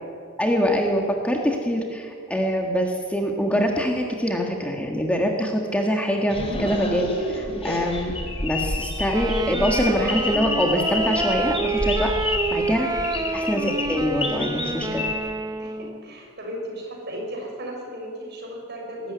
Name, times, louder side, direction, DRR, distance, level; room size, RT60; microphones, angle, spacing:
voice 1, 0.4-8.1 8.4-12.1 12.5-13.0 13.3-15.1, equal, 5° left, 1 dB, 1.6 m, -24 dB
sound 1, 6.3-15.1, left 2 dB, 30° left, 3.3 m, -29 dB
Wind instrument woodwind instrument, 9.1-16.0, right 3 dB, 20° right, 0.8 m, -28 dB
voice 2, 13.1-13.4 15.6-19.1, equal, 50° right, 0 dB, 6.2 m, -36 dB
21.0 x 13.0 x 9.5 m, 2.2 s
head